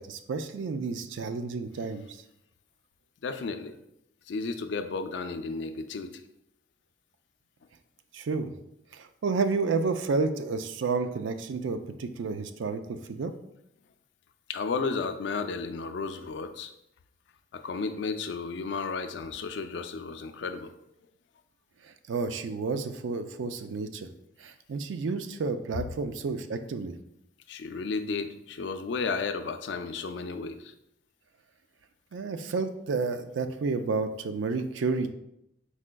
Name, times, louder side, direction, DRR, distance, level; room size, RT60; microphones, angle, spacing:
voice 1, 0.0-2.2 8.1-8.5 8.9-13.3 21.8-24.1 24.4-26.9 32.1-35.1, right 4 dB, 90° right, 9 dB, 0.4 m, -31 dB
voice 2, 3.2-3.8 4.3-6.2 14.5-16.7 17.5-20.7 27.5-30.7, left 4 dB, 70° left, 9 dB, 0.4 m, -33 dB
4.8 x 4.1 x 2.2 m, 0.81 s
head